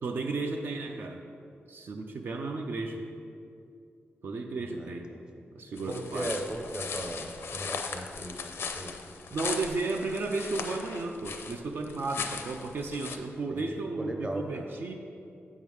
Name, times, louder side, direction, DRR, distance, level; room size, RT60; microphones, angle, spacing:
voice 1, 0.0-1.2 1.7-3.0 4.2-5.1 5.5-6.3 9.3-14.9, right 3 dB, 55° right, 3 dB, 0.4 m, -34 dB
voice 2, 4.6-5.4 5.9-8.9 13.5-14.6, right 1 dB, 20° right, 3 dB, 0.7 m, -38 dB
sound 1, 5.8-13.2, left 5 dB, 75° left, 0.5 m, -38 dB
8.6 x 3.7 x 6.1 m, 2.5 s
wide cardioid pair, 165°, 4 cm